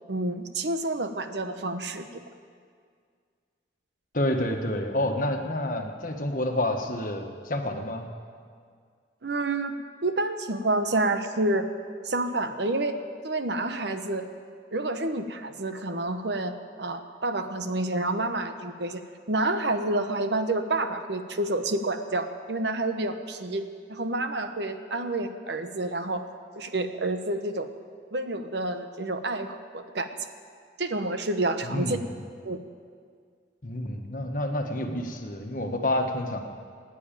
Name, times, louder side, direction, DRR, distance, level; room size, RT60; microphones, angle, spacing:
voice 1, 0.1-2.0 9.2-9.8 10.0-11.7 12.0-12.9 13.2-14.2 14.7-19.0 19.3-26.3 26.6-27.7 28.1-30.1 30.8-32.0 32.4-32.6, right 2 dB, 65° right, 8 dB, 1.0 m, -29 dB
voice 2, 4.1-8.1 31.6-32.0 33.6-36.4, left 1 dB, 45° left, 4 dB, 1.4 m, -29 dB
16.5 x 9.7 x 9.0 m, 2.1 s
head